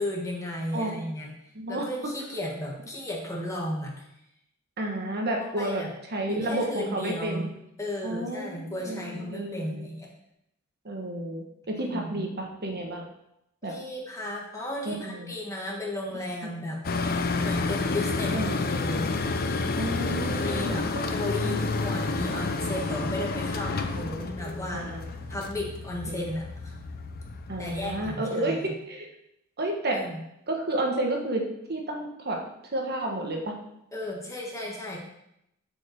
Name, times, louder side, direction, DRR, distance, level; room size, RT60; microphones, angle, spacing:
voice 1, 0.0-1.3 1.7-4.0 5.4-5.9 6.3-7.5 7.8-10.1 11.7-12.2 13.6-16.8 17.4-19.1 20.0-23.9 24.2-24.9 25.3-26.7 27.6-28.7 29.9-30.2 33.9-35.0, left 1 dB, 15° left, -2 dB, 1.8 m, -34 dB
voice 2, 1.5-2.1 4.8-5.8 6.1-7.5 8.0-9.9 10.8-13.1 13.6-13.7 14.8-15.3 18.3-18.5 19.8-20.8 21.4-21.8 23.9-24.3 24.7-25.0 26.1-26.2 27.5-29.1 29.6-30.0 30.5-31.4 31.7-32.4 32.7-33.5, right 1 dB, 50° right, 1 dB, 1.4 m, -31 dB
sound 1, 16.8-28.1, left 3 dB, 45° left, 0.6 m, -30 dB
7.3 x 5.2 x 6.7 m, 0.81 s
head